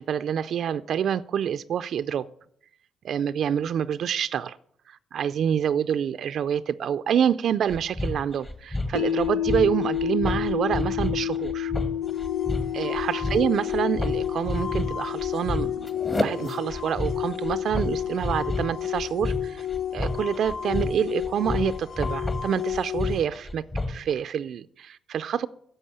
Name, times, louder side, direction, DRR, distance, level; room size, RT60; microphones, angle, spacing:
voice 1, 0.0-2.3 3.0-4.6 4.9-11.7 12.7-19.7 19.9-25.5, right 8 dB, 65° right, 0.4 m, -27 dB
sound 1, 7.7-24.1, left 2 dB, 25° left, 1.4 m, -31 dB
sound 2, 9.0-21.1, left 10 dB, 80° left, 1.2 m, -32 dB
sound 3, 12.0-23.3, left 10 dB, 65° left, 0.6 m, -32 dB
11.0 x 7.0 x 8.6 m
cardioid pair, 90°, 0 cm